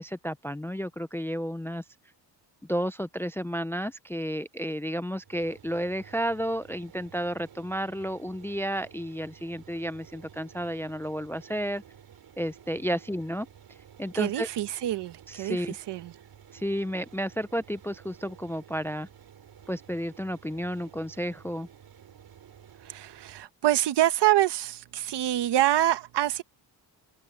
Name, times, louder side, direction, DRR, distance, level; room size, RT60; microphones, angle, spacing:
voice 1, 0.0-1.8 2.7-11.8 12.4-13.5 14.0-14.5 15.3-15.8 16.5-19.1 19.7-21.7, equal, 5° left, 0.4 m, -32 dB
sound 1, 5.2-23.5, right 9 dB, 60° right, 5.4 m, -53 dB
voice 2, 14.1-16.1 22.8-26.4, right 14 dB, 80° right, 1.3 m, -26 dB
open air
cardioid pair, 130°, 41 cm